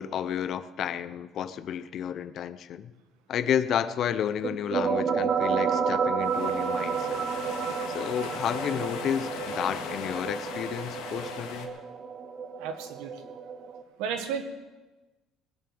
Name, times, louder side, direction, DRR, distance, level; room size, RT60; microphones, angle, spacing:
voice 1, 0.0-2.9 3.3-7.2 7.9-11.7, left 9 dB, 50° left, 13 dB, 0.7 m, -31 dB
sound 1, 4.4-13.8, right 6 dB, 35° right, 0.9 m, -31 dB
sound 2, 6.2-11.7, left 7 dB, 85° left, 2.0 m, -39 dB
voice 2, 12.6-13.1 14.0-14.4, right 7 dB, 85° right, 7 dB, 1.7 m, -32 dB
19.5 x 7.0 x 7.8 m, 1.1 s
cardioid pair, 130°, 0 cm